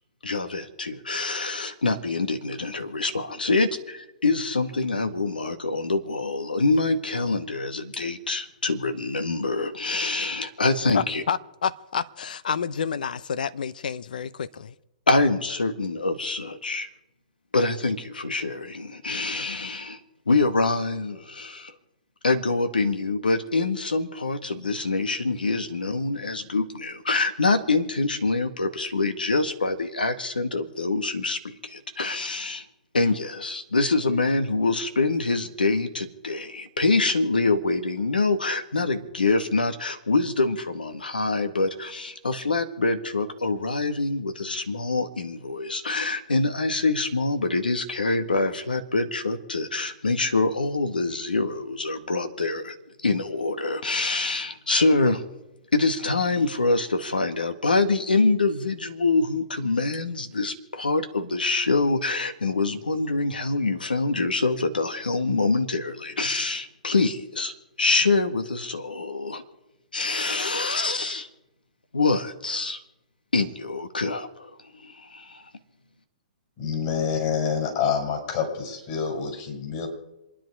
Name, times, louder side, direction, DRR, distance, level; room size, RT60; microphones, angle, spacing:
voice 1, 0.2-11.2 15.1-16.9 17.5-20.0 20.3-21.7 22.2-32.6 32.9-52.8 53.0-55.2 55.7-69.4 69.9-71.3 71.9-72.8 73.3-74.5 74.8-75.5, left 3 dB, 85° left, 1.8 m, -25 dB
voice 2, 10.9-11.4 11.6-14.5, left 7 dB, 70° left, 0.8 m, -28 dB
voice 3, 76.6-79.9, left 6 dB, 45° left, 6.7 m, -27 dB
27.5 x 10.5 x 4.8 m
hypercardioid pair, 120°, 5 cm